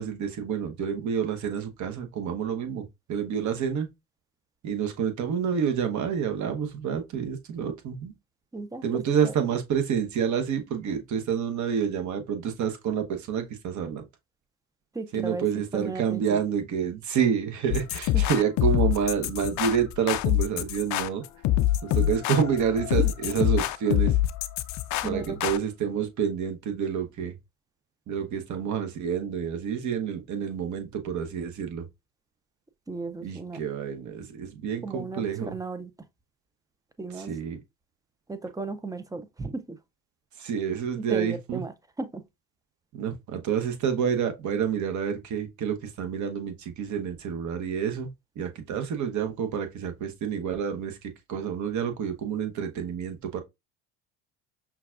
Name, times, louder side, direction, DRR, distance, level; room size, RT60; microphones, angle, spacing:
voice 1, 0.0-2.8 3.1-3.9 4.6-8.1 8.8-14.0 15.1-21.2 21.8-24.2 25.0-27.3 28.1-31.8 33.2-35.6 37.2-37.6 40.4-41.6 42.9-48.1 48.4-53.4, right 7 dB, 45° right, 0.9 m, -28 dB
voice 2, 8.5-9.3 14.9-16.4 18.1-18.2 23.0-23.1 25.0-25.4 32.9-33.6 34.8-35.9 37.0-37.3 38.3-39.8 41.0-41.7 42.0-42.2, right 3 dB, 10° right, 0.4 m, -35 dB
sound 1, 17.7-25.6, left 13 dB, 45° left, 0.4 m, -25 dB
5.6 x 2.3 x 2.4 m
hypercardioid pair, 75°, 40 cm